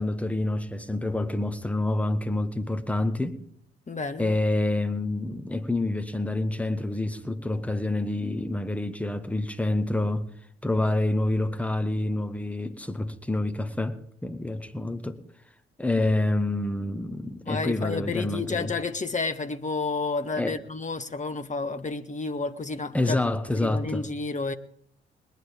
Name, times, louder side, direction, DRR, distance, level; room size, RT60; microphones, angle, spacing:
voice 1, 0.0-3.4 4.2-10.3 10.6-15.2 15.8-18.7 20.4-20.6 22.9-24.1, left 2 dB, 5° left, 1.4 m, -27 dB
voice 2, 3.9-4.4 17.4-23.2 23.5-24.5, left 4 dB, 25° left, 1.3 m, -31 dB
21.0 x 10.5 x 3.6 m
figure-of-eight pair, 40°, 30 cm